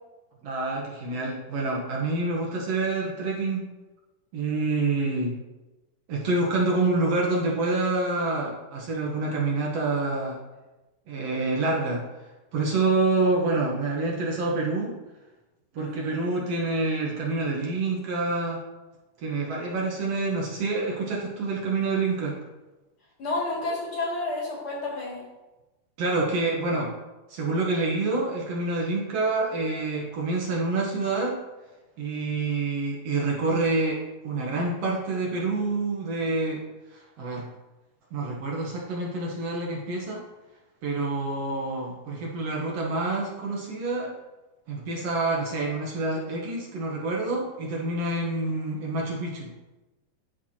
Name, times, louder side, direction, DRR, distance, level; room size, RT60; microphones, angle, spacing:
voice 1, 0.4-3.6 4.3-5.4 6.1-10.4 11.1-12.0 12.5-15.0 15.7-18.6 19.2-22.4 26.0-26.9 27.3-31.4 32.0-36.6 36.9-37.5 38.1-40.2 40.8-44.1 44.7-49.5, right 3 dB, 60° right, -3 dB, 1.9 m, -27 dB
voice 2, 15.8-16.3 23.2-25.2, left 2 dB, 40° left, -6 dB, 2.9 m, -31 dB
12.5 x 4.5 x 2.9 m, 1.1 s
omnidirectional pair, 3.8 m